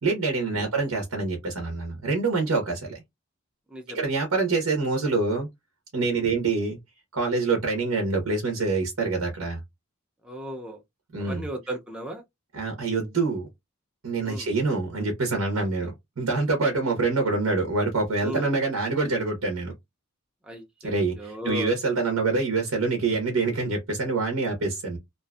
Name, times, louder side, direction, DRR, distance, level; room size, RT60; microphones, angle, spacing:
voice 1, 0.0-3.0 3.9-5.5 5.9-6.8 7.1-9.6 11.1-11.4 12.5-13.5 14.0-19.7 20.8-25.0, right 3 dB, 90° right, 0.8 m, -26 dB
voice 2, 10.2-10.8 11.2-12.2 14.2-14.5 17.4-17.5 18.2-18.5 20.4-21.7 22.1-22.2, equal, 5° right, 0.4 m, -36 dB
2.6 x 2.4 x 2.3 m
head